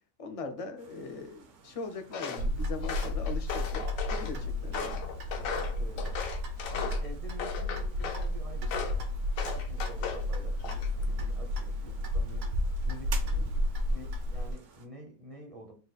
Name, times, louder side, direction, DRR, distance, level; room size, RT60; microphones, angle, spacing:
voice 1, 0.2-5.1, left 4 dB, 50° left, 6 dB, 0.4 m, -40 dB
sound 1, 0.8-14.9, right 5 dB, 65° right, 1.0 m, -53 dB
Walk footsteps, 2.1-2.5 2.8-4.3 4.7-7.1 7.4-8.3 8.7-9.0 9.4-10.2 10.6-11.0, left 6 dB, 80° left, 1.1 m, -37 dB
Clock, 2.4-14.5, left 1 dB, 85° right, 1.3 m, -32 dB
voice 2, 4.3-4.8 5.4-6.2 6.7-9.2 9.4-12.5 12.8-13.5 13.9-15.7, right 1 dB, 35° right, 1 dB, 0.6 m, -48 dB
4.0 x 2.4 x 3.9 m, 0.36 s
omnidirectional pair, 1.4 m